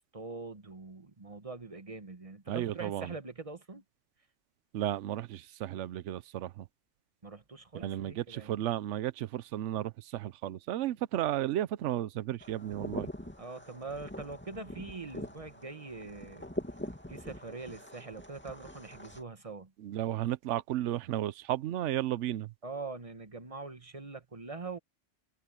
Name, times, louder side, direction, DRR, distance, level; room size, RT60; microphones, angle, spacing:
voice 1, 0.1-3.8 7.2-8.6 13.4-16.5 17.1-19.7 22.6-24.8, right 3 dB, 30° right, 1.4 m, -43 dB
voice 2, 2.5-3.1 4.7-6.6 7.7-13.1 19.8-22.5, right 13 dB, 80° right, 0.9 m, -33 dB
sound 1, 12.4-19.2, left 1 dB, 10° left, 2.3 m, -43 dB
omnidirectional pair, 1.2 m